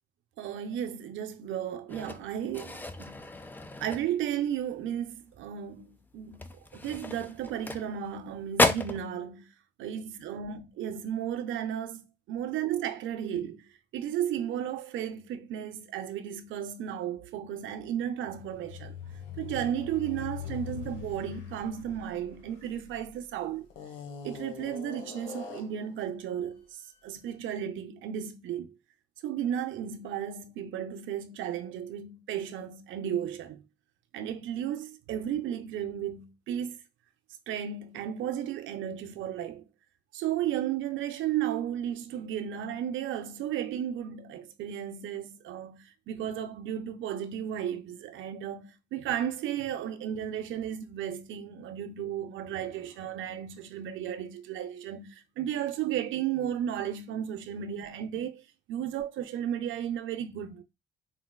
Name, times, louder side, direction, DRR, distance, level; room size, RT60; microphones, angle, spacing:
voice 1, 0.4-3.2 3.8-9.5 9.8-13.6 13.9-19.0 19.4-23.7 24.2-28.7 29.2-33.6 34.1-36.8 37.5-39.6 40.1-58.4 58.7-60.6, right 10 dB, 75° right, 0.5 m, -34 dB
sound 1, 1.9-4.5 4.9-5.2 5.5-5.7 6.3-8.2 8.5-9.0, left 2 dB, 10° left, 0.3 m, -32 dB
sound 2, 18.3-23.1 23.7-25.9, left 8 dB, 80° left, 0.9 m, -42 dB
3.8 x 2.1 x 2.2 m
cardioid pair, 90°, 20 cm